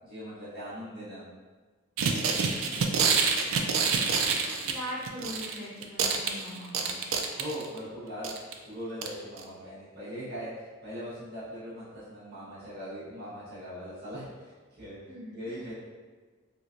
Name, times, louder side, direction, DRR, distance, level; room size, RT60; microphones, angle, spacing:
voice 1, 0.0-1.2 7.4-8.4 8.6-15.0 15.3-15.7, equal, 45° right, -11 dB, 1.2 m, -40 dB
sound 1, 2.0-5.6 5.8-7.8 8.2-8.5 9.0-9.1 9.4-9.5, right 5 dB, 70° right, 0.3 m, -27 dB
voice 2, 2.6-3.1 3.5-7.0 15.1-15.7, equal, 10° left, -14 dB, 1.5 m, -42 dB
3.2 x 3.0 x 2.5 m, 1.4 s
head